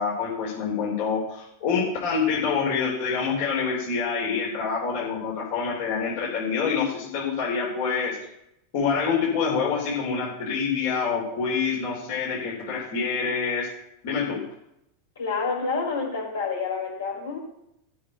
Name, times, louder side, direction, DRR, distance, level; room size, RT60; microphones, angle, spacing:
voice 1, 0.0-8.2 8.7-13.7 14.0-14.4, left 5 dB, 55° left, -4 dB, 3.6 m, -26 dB
voice 2, 15.2-17.4, left 4 dB, 70° left, -1 dB, 4.4 m, -28 dB
13.5 x 6.4 x 5.3 m, 0.80 s
figure-of-eight pair, 85°, 0 cm